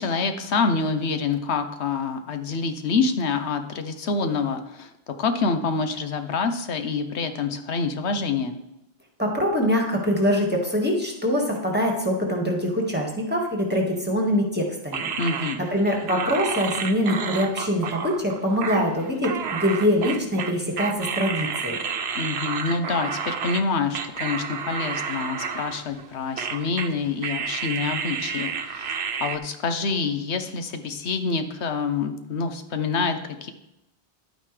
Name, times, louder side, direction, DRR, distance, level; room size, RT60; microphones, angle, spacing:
voice 1, 0.0-4.9 5.2-8.6 15.2-15.6 22.1-33.5, left 4 dB, 90° left, 7 dB, 1.1 m, -26 dB
voice 2, 9.2-15.1 15.7-21.8, equal, 10° right, 0 dB, 1.7 m, -24 dB
sound 1, 14.9-23.6 23.9-26.1 26.4-26.9 27.2-29.4, right 6 dB, 75° right, 1.0 m, -30 dB
11.0 x 9.1 x 3.3 m, 0.85 s
omnidirectional pair, 1.1 m